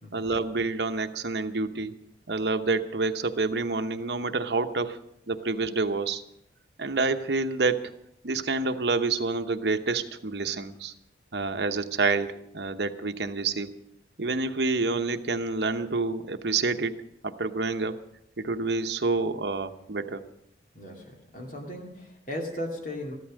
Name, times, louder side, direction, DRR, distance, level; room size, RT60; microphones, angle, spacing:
voice 1, 0.1-2.0 2.3-5.0 5.3-6.2 6.8-7.9 8.2-10.9 11.3-13.7 14.2-18.0 18.4-20.2, right 3 dB, 65° right, 8 dB, 1.0 m, -28 dB
voice 2, 20.7-23.2, left 1 dB, 45° left, 1 dB, 2.5 m, -37 dB
14.5 x 12.5 x 6.4 m, 0.78 s
head